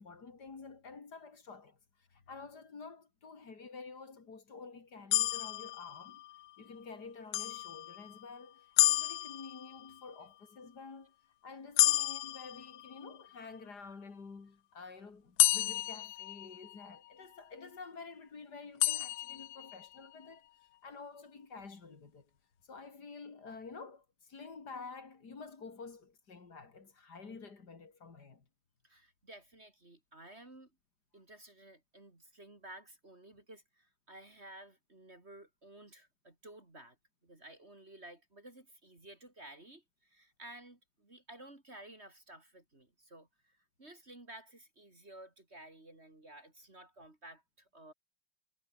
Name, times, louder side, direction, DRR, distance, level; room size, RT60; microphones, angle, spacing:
voice 1, 0.0-1.8 2.1-6.2 6.6-11.1 11.4-20.5 20.8-22.3 22.7-28.4, left 4 dB, 50° left, 3.2 m, -49 dB
sound 1, 5.1-6.5 7.3-8.3 8.8-10.0 11.8-13.3 15.4-17.0 18.8-20.0, left 16 dB, 85° left, 0.8 m, -31 dB
voice 2, 28.8-30.7 31.1-37.0 37.2-47.9, right 1 dB, 30° right, 3.7 m, -54 dB
omnidirectional pair, 2.2 m